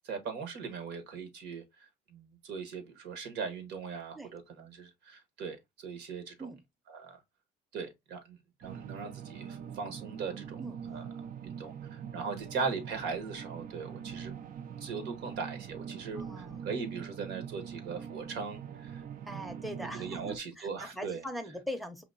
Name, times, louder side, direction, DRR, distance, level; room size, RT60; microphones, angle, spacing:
voice 1, 0.0-6.5 6.9-7.2 7.7-8.4 8.6-10.6 10.9-11.0 11.4-14.3 14.8-19.0 19.3-19.4 19.9-21.2, right 5 dB, 85° right, 1.4 m, -39 dB
sound 1, 8.6-20.4, right 8 dB, 55° right, 0.6 m, -43 dB
voice 2, 16.1-16.7 19.2-22.0, equal, ahead, 0.7 m, -41 dB
5.0 x 2.9 x 2.6 m
cardioid pair, 110°, 17 cm